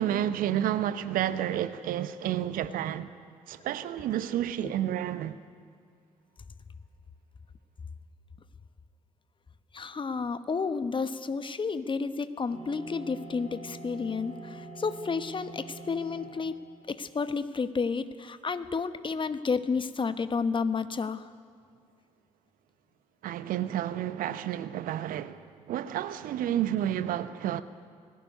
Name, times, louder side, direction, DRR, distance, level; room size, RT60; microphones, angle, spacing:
voice 1, 0.0-3.1 3.5-5.4 23.2-27.6, right 11 dB, 60° right, 0.9 m, -30 dB
voice 2, 9.7-16.6 16.9-21.3, left 5 dB, 30° left, 1.1 m, -31 dB
sound 1, 12.5-16.7, right 2 dB, 40° right, 7.6 m, -44 dB
19.5 x 17.5 x 9.6 m
figure-of-eight pair, 45°, 17 cm